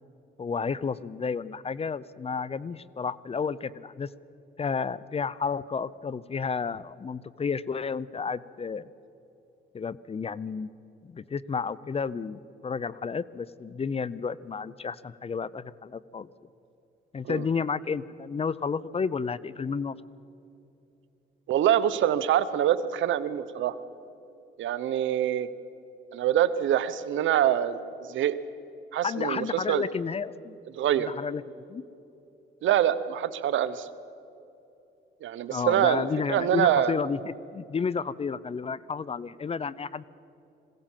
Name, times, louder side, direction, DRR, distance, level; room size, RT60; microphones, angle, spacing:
voice 1, 0.4-4.1 4.6-8.8 9.7-10.7 11.0-16.3 17.1-19.9 29.0-30.6 31.0-31.8 35.5-40.0, left 5 dB, 30° left, 19 dB, 0.6 m, -31 dB
voice 2, 21.5-23.8 24.6-25.5 26.1-27.8 28.1-28.4 28.9-29.8 30.7-31.1 32.6-33.9 35.2-36.9, right 11 dB, 75° right, 13 dB, 1.0 m, -25 dB
21.5 x 16.5 x 7.4 m, 2.7 s
cardioid pair, 90°, 20 cm